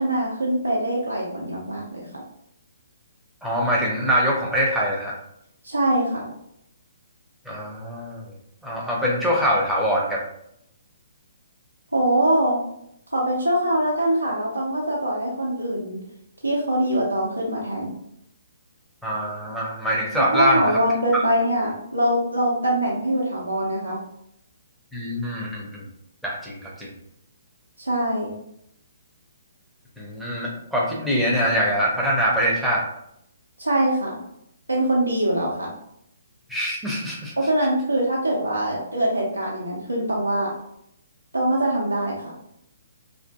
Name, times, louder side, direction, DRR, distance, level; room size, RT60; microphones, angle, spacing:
voice 1, 0.0-2.1 5.6-6.3 11.9-12.6 13.1-16.0 16.4-17.9 20.3-24.0 27.8-28.4 33.6-34.2 34.7-35.7 37.4-40.5 41.3-42.4, right 1 dB, 80° right, -3 dB, 0.5 m, -23 dB
voice 2, 3.4-5.2 7.5-8.3 8.6-10.3 19.0-20.8 24.9-25.9 26.2-26.9 30.0-32.9 36.5-37.4, equal, ahead, -5 dB, 0.6 m, -24 dB
2.5 x 2.5 x 2.2 m, 0.76 s
figure-of-eight pair, 130°, 0 cm